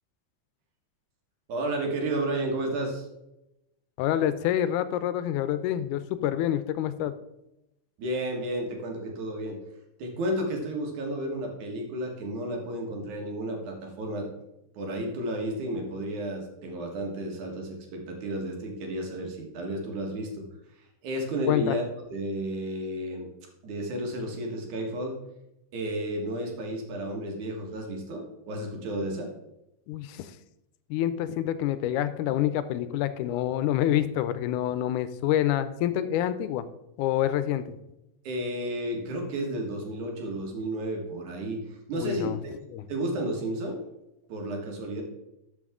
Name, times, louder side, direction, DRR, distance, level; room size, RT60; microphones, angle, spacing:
voice 1, 1.5-3.1 8.0-9.6 10.0-14.3 14.7-20.4 21.0-21.8 22.1-23.3 23.6-25.2 25.7-29.3 38.2-42.5 42.9-43.8 44.3-45.0, right 1 dB, 70° right, 2 dB, 3.0 m, -32 dB
voice 2, 4.0-7.1 21.5-21.7 29.9-30.3 30.9-36.7 37.0-37.8 41.9-42.4 42.7-42.9, left 11 dB, 80° left, 13 dB, 2.0 m, -27 dB
12.5 x 6.0 x 3.6 m, 0.90 s
omnidirectional pair, 3.7 m